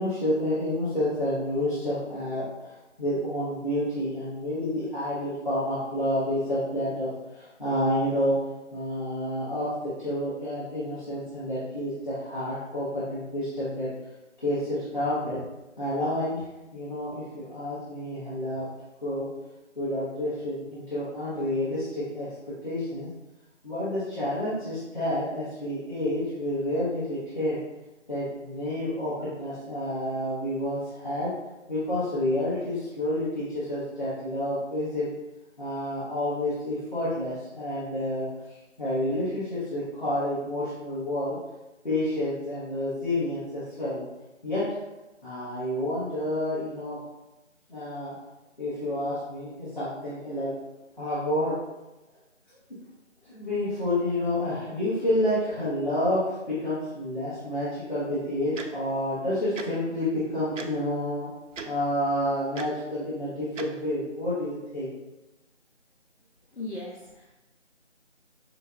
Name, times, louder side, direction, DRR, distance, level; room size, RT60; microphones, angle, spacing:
voice 1, 0.0-8.3 8.7-13.9 14.4-15.4 15.8-16.4 16.7-18.6 19.0-19.3 19.7-22.3 22.6-23.1 23.6-27.6 28.1-31.3 31.7-35.1 35.6-38.3 38.8-41.4 41.8-44.0 44.4-44.6 45.2-47.0 47.7-48.1 48.6-50.5 51.0-51.5 53.3-56.2 56.5-61.3 61.6-64.9, left 1 dB, 40° left, -13 dB, 1.1 m, -29 dB
Tick-tock, 58.5-58.7 59.5-59.7 60.6-60.7 61.5-61.7 62.5-62.7 63.6-63.7, right 5 dB, 80° right, 0.5 m, -36 dB
voice 2, 66.5-67.3, left 2 dB, 70° left, -4 dB, 0.7 m, -38 dB
5.3 x 2.2 x 2.5 m, 1.0 s
figure-of-eight pair, 170°, 37 cm